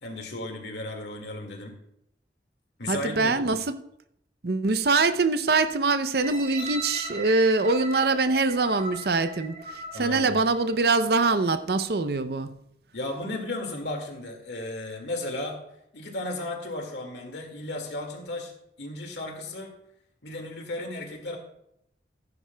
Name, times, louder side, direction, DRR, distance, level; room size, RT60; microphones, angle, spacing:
voice 1, 0.0-1.8 2.8-3.4 9.9-10.3 12.9-15.6 15.9-18.5 18.8-19.8 20.2-21.4, left 2 dB, 80° left, 2.0 m, -34 dB
voice 2, 2.9-3.6 4.4-12.6, right 3 dB, 60° right, 0.6 m, -24 dB
sound 1, 6.2-11.1 11.7-11.8, right 2 dB, 40° right, 3.3 m, -38 dB
14.5 x 11.0 x 2.3 m
head